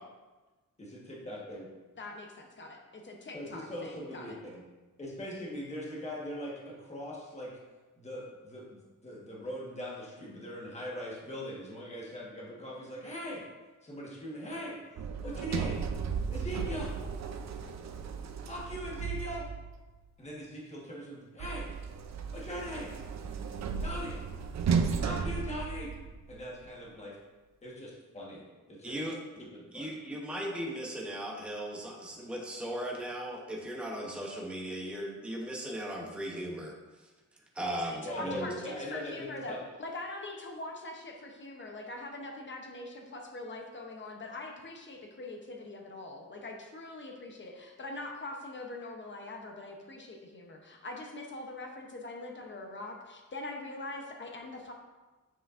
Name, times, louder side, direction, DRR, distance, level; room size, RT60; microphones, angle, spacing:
voice 1, 0.8-1.7 3.3-4.6 5.0-7.5 8.0-13.4 13.8-14.8 15.2-15.8 16.3-16.9 18.5-19.5 20.2-21.7 22.3-22.9 23.8-24.2 25.0-25.9 26.3-27.1 27.6-28.9 29.4-29.9 38.0-39.6, equal, 20° left, -4 dB, 1.3 m, -41 dB
voice 2, 2.0-4.4 38.0-54.7, left 2 dB, 35° left, 2 dB, 0.8 m, -43 dB
Sliding door, 15.0-19.8 21.4-26.3, right 6 dB, 60° right, 0.5 m, -34 dB
voice 3, 28.8-29.2 29.7-37.1 37.5-38.5, equal, 5° right, -2 dB, 0.8 m, -37 dB
7.4 x 5.7 x 2.5 m, 1.2 s
wide cardioid pair, 150°, 32 cm